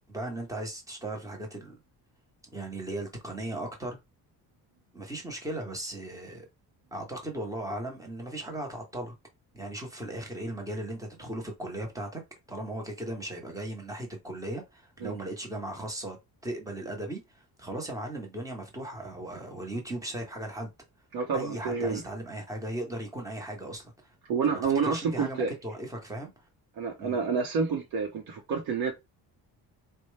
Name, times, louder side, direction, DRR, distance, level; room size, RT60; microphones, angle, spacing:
voice 1, 0.1-1.7 2.5-4.0 4.9-6.5 6.9-9.1 9.5-12.2 12.5-16.2 16.4-20.7 21.3-24.1 24.4-26.3 27.0-27.2, right 1 dB, 10° right, 0.9 m, -37 dB
voice 2, 21.1-22.0 24.3-25.5 26.8-28.9, right 5 dB, 70° right, 0.8 m, -28 dB
4.2 x 2.2 x 3.2 m
cardioid pair, 170°, 39 cm